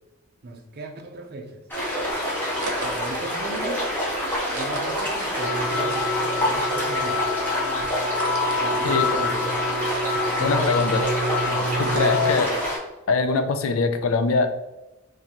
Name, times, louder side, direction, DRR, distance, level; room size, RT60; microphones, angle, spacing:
voice 1, 0.4-1.6 2.8-3.9 4.5-7.2 8.6-9.4 10.3-10.8 11.4-11.7, right 2 dB, 45° right, 4 dB, 0.6 m, -37 dB
A Small river, 1.7-12.8, equal, 10° left, 1.2 m, -27 dB
sound 1, 2.6-6.6 6.9-12.9, right 3 dB, 85° right, 0.7 m, -41 dB
sound 2, 5.4-12.3, left 3 dB, 50° left, 1.0 m, -27 dB
voice 2, 10.4-11.0 11.8-12.5 13.1-14.5, left 4 dB, 65° left, 8 dB, 0.4 m, -22 dB
3.7 x 3.2 x 2.9 m, 0.99 s
head